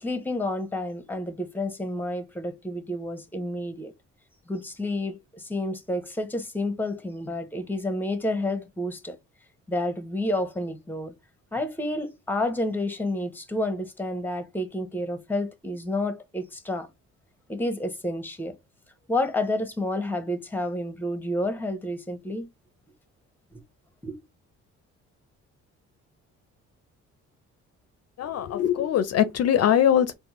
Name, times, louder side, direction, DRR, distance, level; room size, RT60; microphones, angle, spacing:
voice 1, 0.0-3.9 4.5-9.2 9.7-11.1 11.5-16.9 17.5-18.5 19.1-22.5 24.0-24.2, left 1 dB, 5° left, 0.8 m, -30 dB
voice 2, 28.2-30.1, left 10 dB, 55° left, 0.5 m, -22 dB
4.3 x 2.1 x 3.0 m
cardioid pair, 90°, 30 cm